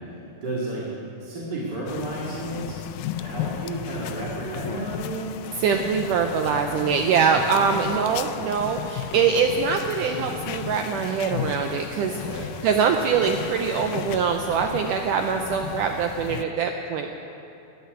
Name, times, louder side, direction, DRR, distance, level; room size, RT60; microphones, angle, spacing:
voice 1, 0.4-0.8 1.2-2.8 3.1-5.3 7.2-7.4 12.1-12.4, right 2 dB, 35° right, -6 dB, 2.3 m, -32 dB
sound 1, 1.9-16.4, left 11 dB, 80° left, 2.2 m, -35 dB
voice 2, 5.6-17.1, right 6 dB, 85° right, 4 dB, 1.9 m, -23 dB
13.5 x 10.5 x 9.6 m, 2.9 s
omnidirectional pair, 4.4 m